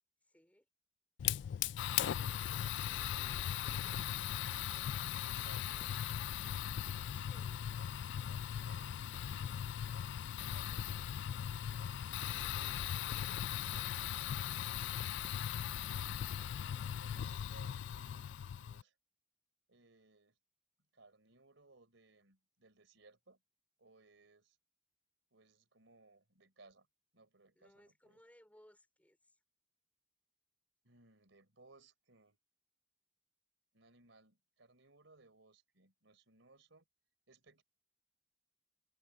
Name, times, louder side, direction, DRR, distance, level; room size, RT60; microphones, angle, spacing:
voice 1, 0.2-0.7 3.1-3.6 7.1-7.7 12.5-15.2 27.5-29.4, equal, 10° left, 4.5 m, -67 dB
Fire, 1.2-18.8, left 10 dB, 65° left, 0.3 m, -39 dB
voice 2, 1.8-2.4 4.4-6.1 8.3-9.6 10.3-11.0 16.5-18.9 19.7-20.4 20.9-23.4 23.8-24.6 25.3-26.9 27.1-28.2 30.8-32.4 33.7-36.9 37.3-37.6, right 3 dB, 75° right, 3.8 m, -65 dB
head